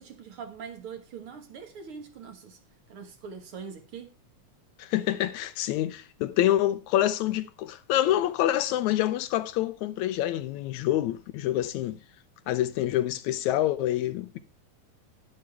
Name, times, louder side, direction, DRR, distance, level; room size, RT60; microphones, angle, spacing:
voice 1, 0.0-2.6 2.9-4.1, right 6 dB, 50° right, 2.1 m, -42 dB
voice 2, 4.8-12.0 12.5-14.4, left 13 dB, 80° left, 1.9 m, -27 dB
11.0 x 10.5 x 3.4 m
omnidirectional pair, 3.5 m